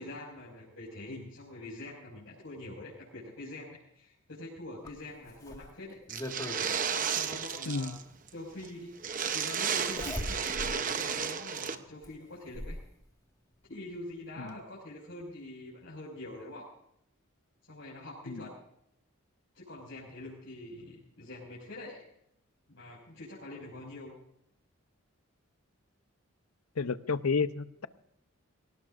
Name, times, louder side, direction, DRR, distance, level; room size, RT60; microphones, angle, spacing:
voice 1, 0.0-6.0 7.0-8.0 8.3-8.9 9.3-12.8 13.7-16.7 17.7-18.6 19.5-22.0 22.7-24.2, left 1 dB, 60° left, -7 dB, 5.9 m, -44 dB
Zipper (clothing), 4.8-6.6 8.1-8.2 9.8-10.8 11.2-11.3 12.0-12.9 14.1-14.2 14.5-14.6, left 1 dB, 15° left, 1.9 m, -40 dB
sound 1, 6.1-8.0 8.3-8.4 8.6-8.7 9.0-11.7, right 7 dB, 35° right, 0.9 m, -33 dB
voice 2, 7.7-8.0 14.4-14.6 18.3-18.4 26.8-27.9, left 4 dB, 90° left, 13 dB, 0.8 m, -31 dB
23.0 x 18.5 x 2.6 m, 0.73 s
head